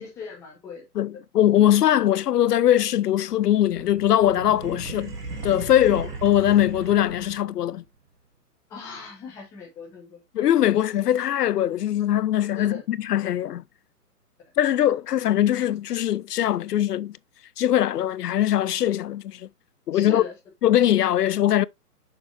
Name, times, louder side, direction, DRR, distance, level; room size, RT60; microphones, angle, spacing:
voice 1, 0.0-0.8 5.9-6.0 8.7-10.2 12.6-12.8 19.9-20.3, left 5 dB, 5° left, 1.0 m, -38 dB
voice 2, 0.9-5.1 5.4-7.8 10.3-13.6 14.6-17.2 17.6-19.5 19.9-20.2 20.6-21.6, left 12 dB, 80° left, 0.5 m, -21 dB
sound 1, 3.4-7.7, right 3 dB, 80° right, 2.8 m, -36 dB
6.6 x 4.7 x 3.3 m
hypercardioid pair, 160°, 47 cm